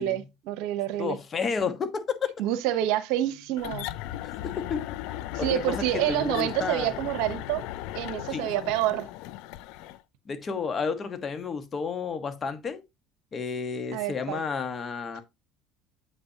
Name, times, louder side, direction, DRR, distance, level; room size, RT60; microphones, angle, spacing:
voice 1, 0.0-1.2 2.4-3.9 5.3-7.6 7.9-9.1 13.9-14.4, right 13 dB, 75° right, 0.9 m, -28 dB
voice 2, 1.0-2.3 4.2-4.3 4.7-4.8 5.4-5.7 6.1-6.9 8.3-8.7 10.3-12.8 13.3-15.2, left 5 dB, 35° left, 1.3 m, -31 dB
sound 1, 3.6-10.0, left 13 dB, 75° left, 0.4 m, -37 dB
8.1 x 5.4 x 2.8 m
supercardioid pair, 90°, 0 cm